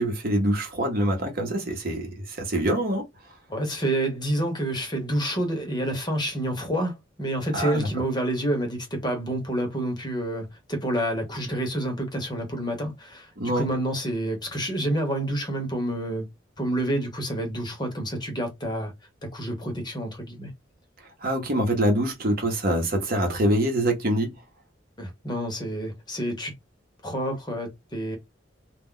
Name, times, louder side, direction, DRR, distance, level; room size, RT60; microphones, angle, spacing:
voice 1, 0.0-3.0 7.5-7.9 13.4-13.7 21.2-24.3, right 1 dB, 50° right, 0.8 m, -25 dB
voice 2, 3.5-16.3 16.6-18.9 19.2-20.5 25.0-26.5 27.0-28.2, right 1 dB, 25° left, 0.8 m, -28 dB
2.3 x 2.1 x 3.7 m
head